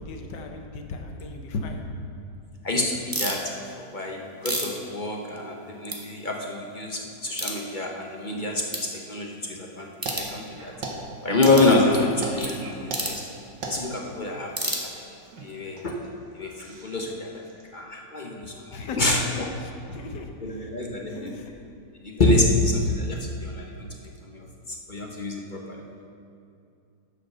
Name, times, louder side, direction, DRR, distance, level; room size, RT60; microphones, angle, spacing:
voice 1, 0.0-1.9 18.7-19.3 19.6-20.7 21.1-21.5, left 3 dB, 85° left, 4 dB, 1.5 m, -36 dB
voice 2, 2.6-3.4 3.8-9.9 10.1-10.7 11.2-13.2 13.6-14.5 14.8-15.0 15.4-15.9 16.3-17.4 17.7-19.2 20.4-21.3 22.0-25.8, left 2 dB, 40° left, 0 dB, 0.7 m, -26 dB
sound 1, 3.1-3.4 4.1-5.6 5.9-6.0 6.5-6.6 7.3-7.6 8.2-8.3 8.7-8.9 9.9-10.3 11.4-11.7 12.9-13.2 14.5-15.3, right 1 dB, 15° right, 0.9 m, -30 dB
sound 2, 10.0-17.7, right 3 dB, 80° right, 1.8 m, -39 dB
10.5 x 5.5 x 6.7 m, 2.6 s
omnidirectional pair, 1.9 m